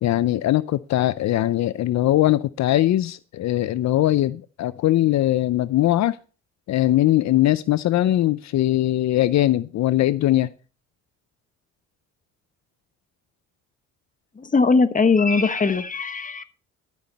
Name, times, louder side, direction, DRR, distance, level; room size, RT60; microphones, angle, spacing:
voice 1, 0.0-6.2 6.7-10.5, left 14 dB, 65° left, 0.6 m, -20 dB
voice 2, 14.4-16.4, left 4 dB, 25° left, 1.2 m, -20 dB
12.5 x 9.4 x 4.2 m
cardioid pair, 90°, 30 cm